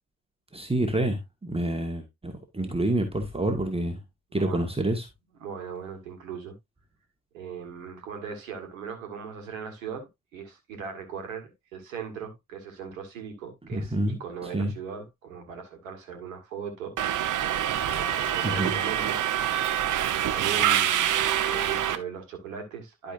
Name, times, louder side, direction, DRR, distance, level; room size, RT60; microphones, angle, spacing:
voice 1, 0.5-4.0 4.3-5.1 13.7-14.2 14.4-14.7 18.4-18.7, right 1 dB, 15° right, 1.7 m, -28 dB
voice 2, 4.3-4.6 5.4-6.5 7.3-19.2 20.3-21.2 21.4-23.1, right 6 dB, 80° right, 1.7 m, -39 dB
Subway metro underground, 17.0-22.0, right 10 dB, 50° right, 1.0 m, -25 dB
12.0 x 5.2 x 2.6 m
figure-of-eight pair, 45°, 39 cm